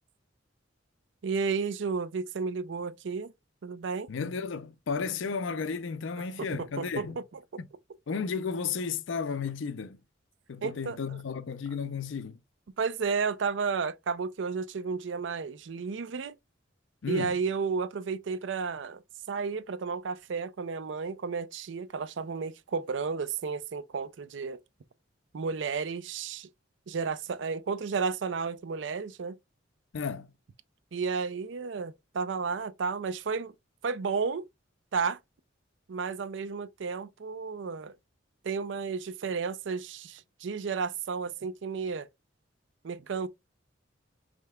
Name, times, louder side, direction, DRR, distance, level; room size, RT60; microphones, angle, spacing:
voice 1, 1.2-3.3 3.6-4.1 6.6-7.1 7.3-7.4 10.6-11.2 12.8-16.3 17.1-19.0 19.3-24.6 25.3-26.5 26.9-29.4 30.9-33.5 33.8-34.4 34.9-35.2 35.9-37.9 38.4-42.1 42.8-43.3, right 5 dB, 65° right, 0.4 m, -32 dB
voice 2, 4.1-7.2 7.6-7.7 8.1-10.0 10.5-12.4 17.0-17.3 29.9-30.3, left 5 dB, 70° left, 0.5 m, -33 dB
5.1 x 3.3 x 2.2 m
head